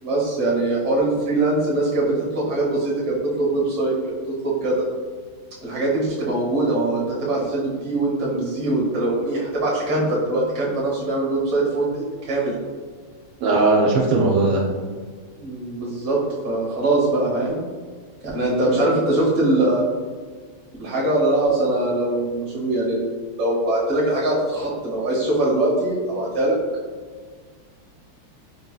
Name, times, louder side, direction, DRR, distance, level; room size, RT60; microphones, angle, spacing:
voice 1, 0.0-3.9 4.6-4.8 5.6-12.5 15.3-16.2 16.4-17.6 18.3-19.9 20.8-23.1 23.4-26.6, right 2 dB, 35° right, -4 dB, 1.0 m, -22 dB
voice 2, 13.4-14.6, right 3 dB, 75° right, -1 dB, 1.3 m, -18 dB
4.8 x 2.7 x 2.3 m, 1.5 s
omnidirectional pair, 2.3 m